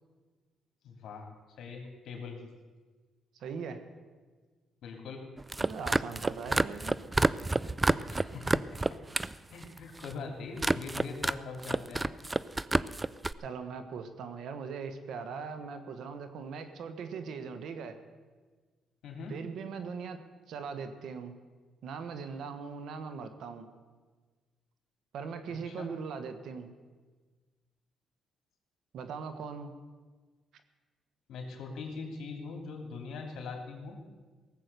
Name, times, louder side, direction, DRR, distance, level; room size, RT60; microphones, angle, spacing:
voice 1, 0.8-1.3 1.6-2.4 4.8-5.2 8.1-9.0 9.5-12.0 19.0-19.4 25.6-25.9 31.3-34.0, left 4 dB, 70° left, 3 dB, 2.9 m, -42 dB
voice 2, 3.3-3.8 5.6-7.0 13.4-18.0 19.3-21.3 21.8-23.7 25.1-26.7 28.9-29.7, right 5 dB, 75° right, 9 dB, 1.4 m, -40 dB
sound 1, 5.4-9.3 9.6-10.1 10.6-11.4 11.6-13.3, right 2 dB, 15° right, 0.4 m, -29 dB
18.0 x 7.8 x 6.8 m, 1.4 s
cardioid pair, 90°, 0 cm